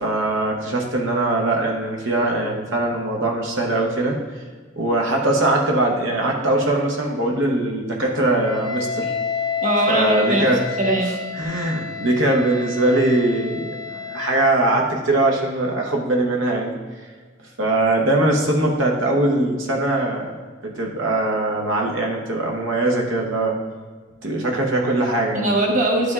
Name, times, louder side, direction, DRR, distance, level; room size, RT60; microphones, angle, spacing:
voice 1, 0.0-4.2 4.8-9.1 9.9-10.6 11.4-16.7 17.6-20.4 20.6-23.5 24.2-25.5, right 2 dB, 75° right, 0 dB, 0.9 m, -21 dB
Wind instrument woodwind instrument, 8.4-14.5, left 7 dB, 20° left, 0.6 m, -29 dB
voice 2, 9.6-10.5 10.8-11.2 25.3-26.1, right 1 dB, 40° right, 0 dB, 1.1 m, -20 dB
10.5 x 5.0 x 2.4 m, 1.4 s
head